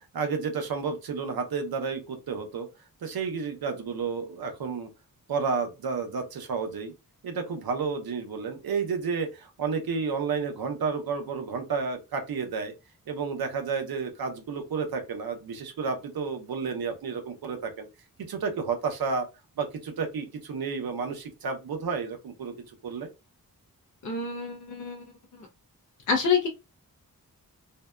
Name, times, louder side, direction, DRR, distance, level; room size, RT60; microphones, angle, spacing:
voice 1, 0.1-2.7 3.0-4.9 5.3-6.9 7.2-12.7 13.1-17.9 18.3-19.3 19.6-23.1, right 5 dB, 80° right, 0.7 m, -31 dB
voice 2, 24.0-25.0 26.1-26.5, left 5 dB, 55° left, 0.5 m, -27 dB
2.6 x 2.2 x 2.2 m
wide cardioid pair, 125°, 36 cm